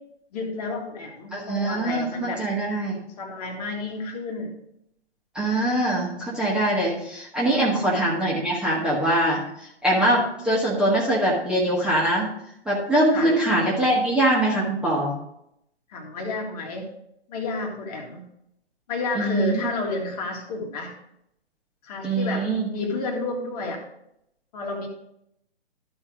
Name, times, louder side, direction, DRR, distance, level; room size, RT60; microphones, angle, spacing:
voice 1, 0.3-2.4 3.2-4.5 7.5-7.8 13.1-13.3 15.9-16.9 17.3-18.3 18.9-20.9 21.8-23.8 24.5-24.9, left 3 dB, 35° left, 1 dB, 1.9 m, -31 dB
voice 2, 1.3-3.0 5.3-12.3 12.6-15.1 19.1-19.7 22.0-22.7, right 1 dB, 5° right, -6 dB, 1.6 m, -23 dB
12.5 x 4.4 x 4.9 m, 0.77 s
figure-of-eight pair, 130°, 33 cm